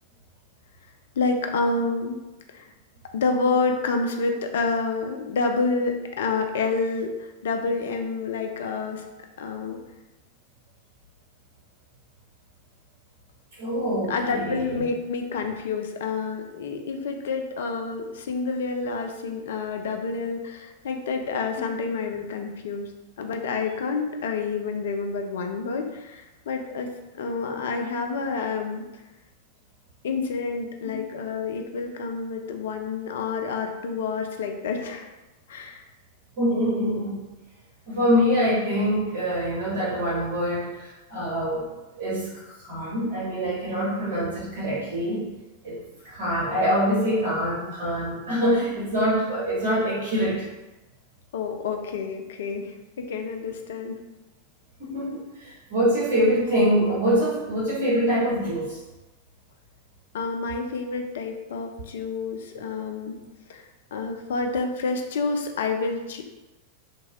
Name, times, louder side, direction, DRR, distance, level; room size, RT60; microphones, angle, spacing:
voice 1, 1.2-2.2 2.5-2.7 3.1-9.0 9.4-9.8 14.1-22.9 23.2-28.8 30.0-35.1 35.5-35.8 51.3-54.0 60.1-63.2 63.5-63.7 63.9-66.2, left 4 dB, 60° left, 4 dB, 0.3 m, -28 dB
voice 2, 13.6-14.8 30.8-31.0 36.4-37.3 37.9-41.7 42.0-45.2 45.6-50.5 54.8-58.8, equal, 55° right, -7 dB, 1.0 m, -25 dB
2.8 x 2.2 x 2.8 m, 1.0 s
figure-of-eight pair, 90°, 0 cm